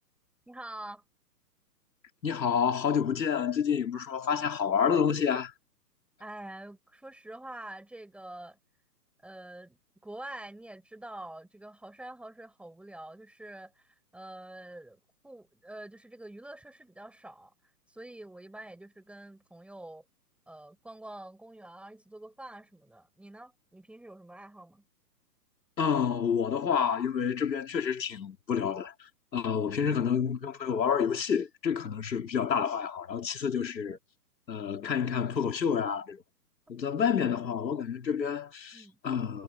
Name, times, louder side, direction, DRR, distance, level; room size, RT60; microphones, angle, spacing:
voice 1, 0.5-1.0 6.2-8.6 9.2-17.5 17.9-20.0 20.5-24.8 29.8-30.0 38.7-39.0, right 1 dB, ahead, 6.9 m, -46 dB
voice 2, 2.2-5.5 25.8-34.0 34.5-36.2 36.7-39.4, left 7 dB, 85° left, 3.2 m, -29 dB
hypercardioid pair, 155°, 50 cm